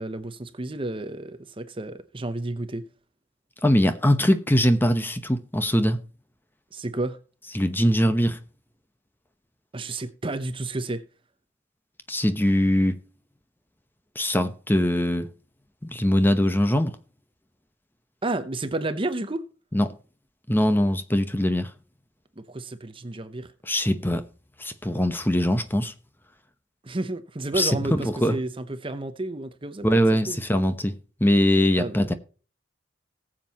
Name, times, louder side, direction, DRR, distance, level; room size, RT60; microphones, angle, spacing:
voice 1, 0.0-2.8 6.7-7.2 9.7-11.0 18.2-19.4 22.4-23.5 26.8-30.0 30.3-30.4 31.7-32.1, right 2 dB, 25° right, 0.8 m, -31 dB
voice 2, 3.6-6.0 7.5-8.4 12.1-13.0 14.1-15.3 15.8-16.9 19.7-19.9 20.5-21.7 23.6-24.2 24.6-25.9 27.5-28.4 29.8-30.9 31.2-32.1, equal, 10° left, 0.9 m, -22 dB
19.0 x 7.6 x 3.0 m
head